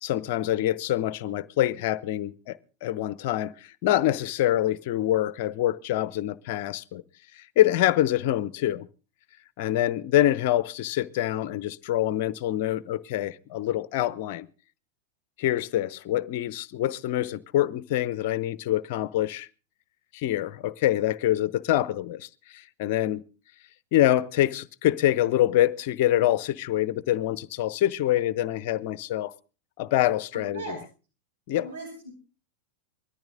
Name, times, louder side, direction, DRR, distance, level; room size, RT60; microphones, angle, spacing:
voice 1, 0.0-3.5 3.8-7.0 7.4-8.9 9.6-14.5 15.4-19.5 20.1-23.2 23.9-29.3 29.8-30.8 31.5-31.7, left 13 dB, 50° left, 0.8 m, -25 dB
voice 2, 30.3-30.8 31.5-32.1, right 3 dB, 75° right, 6.6 m, -38 dB
20.5 x 13.5 x 3.8 m
figure-of-eight pair, 90°, 0 cm